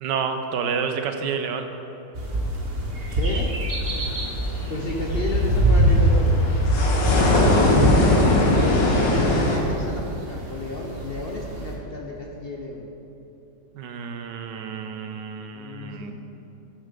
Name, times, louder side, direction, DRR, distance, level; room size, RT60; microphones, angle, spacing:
voice 1, 0.0-1.7 13.7-16.1, right 6 dB, 80° right, 7 dB, 1.4 m, -29 dB
sound 1, 2.1-11.7, right 1 dB, 35° right, 1.4 m, -23 dB
voice 2, 3.1-3.6 4.7-6.5 8.6-12.9 15.5-16.1, left 2 dB, 45° left, 0 dB, 0.8 m, -32 dB
sound 2, 3.8-9.6, left 2 dB, 85° left, 2.1 m, -22 dB
12.5 x 7.4 x 5.2 m, 2.8 s
omnidirectional pair, 1.9 m